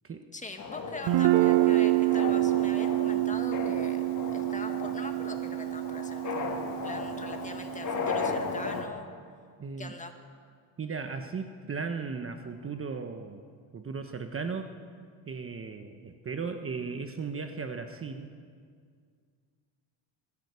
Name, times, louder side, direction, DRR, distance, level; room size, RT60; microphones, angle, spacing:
voice 1, 0.3-4.0 4.3-9.1 9.8-10.1, left 2 dB, 15° left, 5 dB, 1.9 m, -43 dB
sound 1, 0.6-8.8, left 4 dB, 40° left, 2.4 m, -36 dB
Guitar, 1.1-8.8, right 18 dB, 60° right, 0.6 m, -27 dB
voice 2, 9.6-9.9 10.8-13.4 13.7-14.7 15.3-18.4, right 5 dB, 30° right, 6 dB, 1.1 m, -36 dB
20.5 x 15.5 x 8.3 m, 2.1 s
cardioid pair, 125°, 47 cm